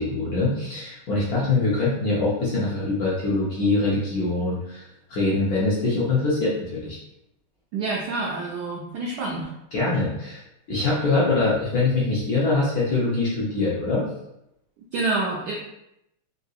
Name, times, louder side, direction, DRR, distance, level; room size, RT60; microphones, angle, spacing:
voice 1, 0.0-4.8 5.1-7.0 9.7-10.4 10.7-14.1, left 3 dB, 65° left, -7 dB, 0.9 m, -23 dB
voice 2, 7.7-9.5 14.9-15.5, right 3 dB, 80° right, -3 dB, 0.9 m, -27 dB
3.7 x 2.6 x 2.3 m, 0.84 s
omnidirectional pair, 2.3 m